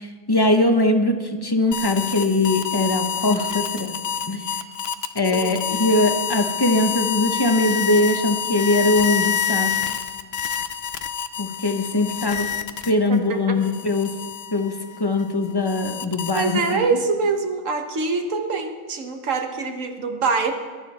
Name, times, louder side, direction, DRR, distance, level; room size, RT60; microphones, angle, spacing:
voice 1, 0.0-3.9 4.3-4.5 5.1-9.7 11.4-12.5 12.9-14.1 14.5-16.8, left 2 dB, 20° left, 5 dB, 0.9 m, -21 dB
sound 1, 1.7-13.2 13.6-17.0, left 8 dB, 60° left, 0.9 m, -28 dB
voice 2, 5.3-5.6 13.1-13.6 16.3-20.5, right 4 dB, 75° right, 4 dB, 1.5 m, -24 dB
21.5 x 11.5 x 4.2 m, 1.5 s
omnidirectional pair, 1.3 m